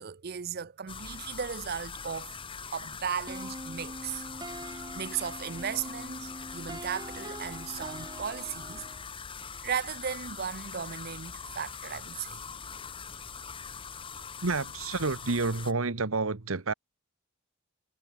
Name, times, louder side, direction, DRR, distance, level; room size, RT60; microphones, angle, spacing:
voice 1, 0.0-4.2 4.7-8.9 9.6-12.4, right 7 dB, 45° right, 0.5 m, -36 dB
sound 1, 0.9-15.7, left 6 dB, 25° left, 1.2 m, -42 dB
sound 2, 1.4-15.4, left 3 dB, 40° left, 4.9 m, -63 dB
sound 3, 3.3-9.1, right 1 dB, 20° right, 2.7 m, -43 dB
voice 2, 14.4-16.7, right 3 dB, 80° right, 1.3 m, -29 dB
head